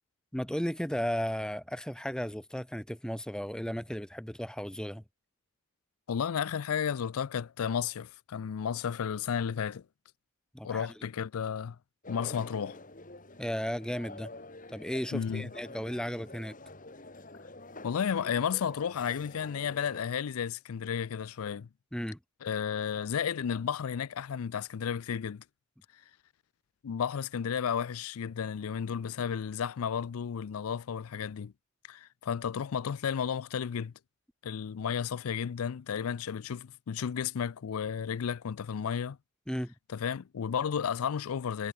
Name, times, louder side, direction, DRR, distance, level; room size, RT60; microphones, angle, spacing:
voice 1, 0.3-5.0 10.5-10.9 13.4-14.3 14.7-16.6 21.9-22.2 39.5-39.7, equal, 5° left, 1.0 m, -35 dB
voice 2, 6.1-9.8 10.6-11.8 12.1-12.8 15.1-15.5 17.8-21.7 22.4-25.4 26.8-31.5 31.9-33.9 34.4-39.2 39.9-41.7, left 7 dB, 85° left, 0.4 m, -33 dB
sound 1, 12.0-20.0, left 2 dB, 40° left, 3.7 m, -47 dB
head